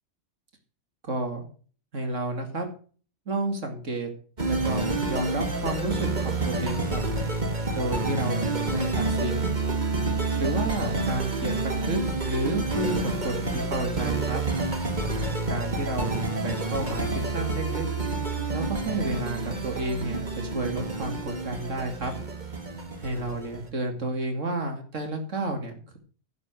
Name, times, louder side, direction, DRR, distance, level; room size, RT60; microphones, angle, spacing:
voice 1, 1.0-1.4 1.9-2.7 3.3-4.1 4.4-7.0 7.7-9.5 10.4-14.4 15.5-17.9 18.5-22.1 23.0-26.0, right 2 dB, 70° right, 5 dB, 2.8 m, -31 dB
sound 1, 4.4-23.7, right 3 dB, 35° right, 2.1 m, -28 dB
11.0 x 8.3 x 6.2 m, 0.40 s
omnidirectional pair, 1.3 m